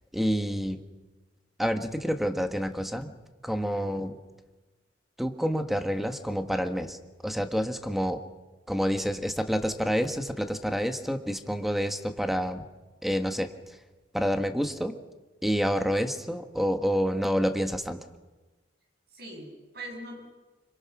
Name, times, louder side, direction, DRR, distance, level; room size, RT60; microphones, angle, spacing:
voice 1, 0.1-0.8 1.6-3.1 3.4-4.1 5.2-7.0 7.2-8.2 8.7-12.6 13.0-13.5 14.1-14.9 15.4-18.0, equal, ahead, 6 dB, 1.5 m, -28 dB
voice 2, 19.1-20.4, right 1 dB, 60° right, 2 dB, 7.7 m, -42 dB
26.5 x 25.0 x 6.1 m, 1.2 s
head